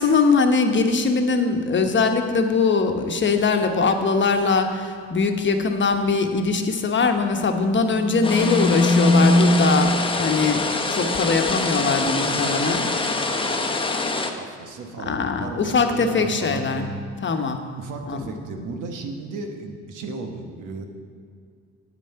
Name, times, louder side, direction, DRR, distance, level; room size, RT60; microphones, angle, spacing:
voice 1, 0.0-10.6 10.9-12.8 15.1-16.9 17.2-17.7 18.1-18.3, left 4 dB, 40° left, 6 dB, 1.1 m, -21 dB
sound 1, 7.6-10.2, left 1 dB, 85° left, 1.0 m, -20 dB
sound 2, 8.2-14.3, left 3 dB, 15° left, 0.9 m, -25 dB
voice 2, 12.3-12.7 13.1-17.0 17.8-20.9, right 3 dB, 85° right, 4 dB, 1.2 m, -35 dB
9.2 x 8.5 x 5.7 m, 2.2 s
cardioid pair, 90°, 30 cm